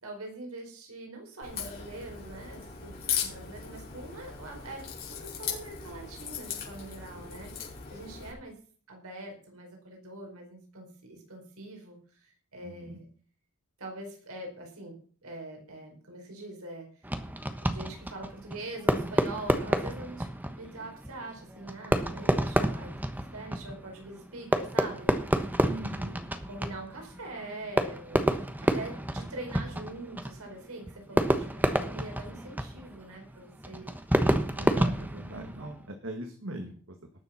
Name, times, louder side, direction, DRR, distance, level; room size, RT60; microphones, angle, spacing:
voice 1, 0.0-8.6 8.9-13.1 13.8-15.0 15.2-16.9 17.6-20.3 20.5-22.9 23.3-25.1 25.7-33.9, right 2 dB, 90° right, 1 dB, 4.8 m, -43 dB
Crack, 1.4-8.3, left 7 dB, 45° left, 5.4 m, -38 dB
voice 2, 12.6-13.0 25.6-26.2 34.4-36.9, right 1 dB, 60° right, 5 dB, 1.7 m, -40 dB
Fireworks, 17.0-35.9, right 1 dB, 10° right, 1.1 m, -30 dB
19.0 x 7.1 x 5.9 m, 0.44 s
head